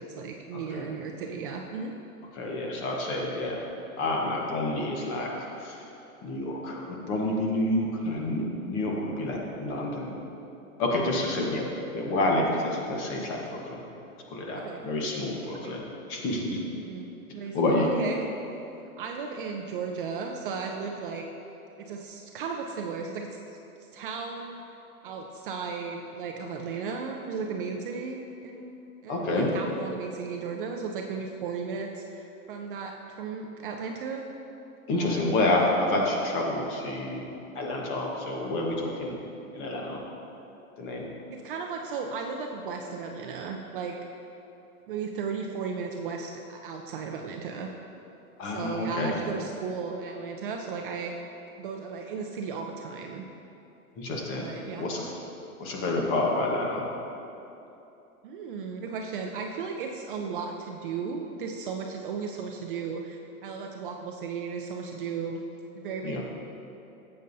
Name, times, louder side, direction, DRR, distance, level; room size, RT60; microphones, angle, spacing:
voice 1, 0.0-1.9 14.5-14.8 15.6-15.7 16.7-17.1 17.3-18.2 19.0-21.2 21.8-23.3 23.9-24.6 25.0-28.8 29.0-32.9 33.2-34.3 34.9-35.4 41.3-43.9 44.9-47.7 48.4-51.1 51.6-53.3 54.4-54.9 58.2-65.4 65.7-66.2, right 5 dB, 40° right, 2 dB, 0.5 m, -35 dB
voice 2, 0.5-0.9 2.3-3.6 4.0-5.8 6.2-10.1 10.8-11.7 11.9-13.8 14.3-15.8 16.1-16.6 17.5-17.9 29.1-29.5 34.9-37.2 37.5-39.2 39.5-40.0 40.8-41.1 48.4-49.1 54.0-54.5 54.8-55.1 55.6-56.9 66.0-66.2, left 2 dB, 30° left, -1 dB, 1.2 m, -28 dB
12.0 x 7.8 x 2.7 m, 2.9 s
hypercardioid pair, 145°, 44 cm